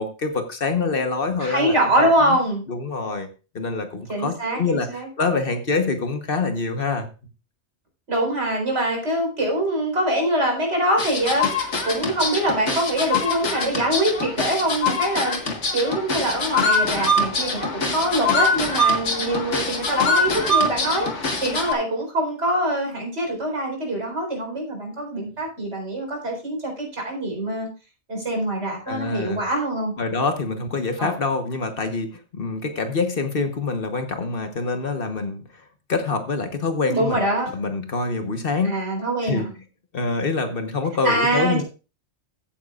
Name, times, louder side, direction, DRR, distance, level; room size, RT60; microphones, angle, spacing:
voice 1, 0.0-2.4 2.7-3.3 3.5-7.1 28.9-29.4 30.0-35.4 35.9-37.2 37.5-38.8 39.2-39.5 39.9-41.6, left 4 dB, 55° left, 7 dB, 1.4 m, -25 dB
voice 2, 1.4-2.6 4.1-5.1 8.1-15.4 15.7-27.7 28.1-29.9 31.0-31.1 36.9-37.5 38.6-39.5 41.0-41.6, right 1 dB, 85° right, 1 dB, 4.6 m, -24 dB
sound 1, 11.0-21.7, left 2 dB, 80° left, 2.0 m, -23 dB
15.0 x 9.2 x 2.5 m, 0.32 s
omnidirectional pair, 1.2 m